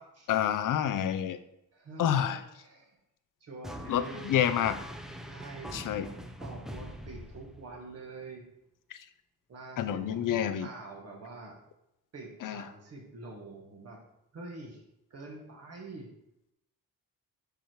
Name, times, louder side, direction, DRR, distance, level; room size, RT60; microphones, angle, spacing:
voice 1, 0.3-1.4 2.0-2.4 3.9-4.8 5.7-6.1 8.9-9.0 9.8-10.7 12.4-12.6, left 10 dB, 60° left, 12 dB, 0.7 m, -28 dB
voice 2, 1.7-3.0 3.4-4.7 5.3-8.5 9.5-11.6 12.1-14.0 14.3-14.8 15.1-16.1, right 3 dB, 45° right, -1 dB, 1.9 m, -46 dB
sound 1, 3.6-7.9, equal, ahead, 0.6 m, -43 dB
10.5 x 5.0 x 4.7 m, 0.84 s
cardioid pair, 155°, 36 cm